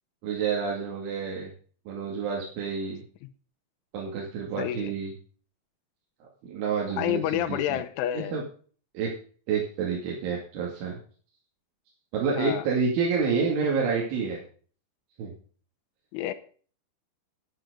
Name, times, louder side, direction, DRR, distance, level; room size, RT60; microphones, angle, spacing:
voice 1, 0.2-1.5 1.9-3.0 3.9-5.1 6.4-7.8 8.1-8.4 8.9-9.1 9.5-11.0 12.1-14.4 15.2-15.3, right 5 dB, 70° right, -2 dB, 4.7 m, -28 dB
voice 2, 4.6-4.9 7.0-8.4 12.4-12.6 16.1-16.3, left 12 dB, 80° left, 8 dB, 3.3 m, -29 dB
12.5 x 9.4 x 5.1 m, 0.42 s
omnidirectional pair, 5.8 m